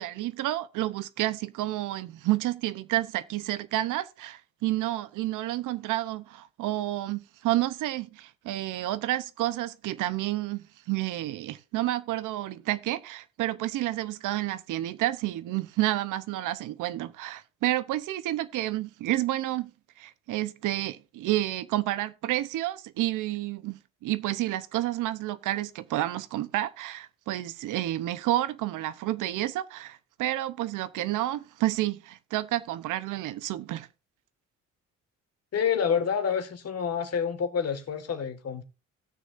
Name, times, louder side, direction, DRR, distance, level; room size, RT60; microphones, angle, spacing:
voice 1, 0.0-19.7 20.0-33.9, right 15 dB, 90° right, 0.8 m, -30 dB
voice 2, 35.5-38.6, left 7 dB, 55° left, 1.9 m, -28 dB
18.0 x 6.5 x 2.6 m
cardioid pair, 90°, 30 cm